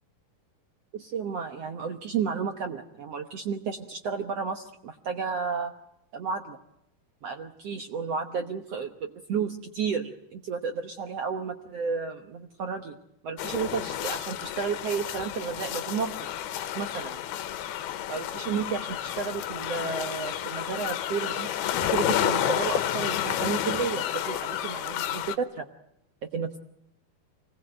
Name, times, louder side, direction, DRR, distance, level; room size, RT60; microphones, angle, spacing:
voice 1, 0.9-5.7 6.1-6.6 7.2-13.0 13.2-16.1 16.7-17.2 18.1-21.5 21.8-25.7 26.3-26.6, right 6 dB, 70° right, 5 dB, 1.5 m, -32 dB
sound 1, 13.4-25.4, left 11 dB, 80° left, 3.0 m, -30 dB
26.0 x 19.5 x 7.7 m, 0.83 s
omnidirectional pair, 4.5 m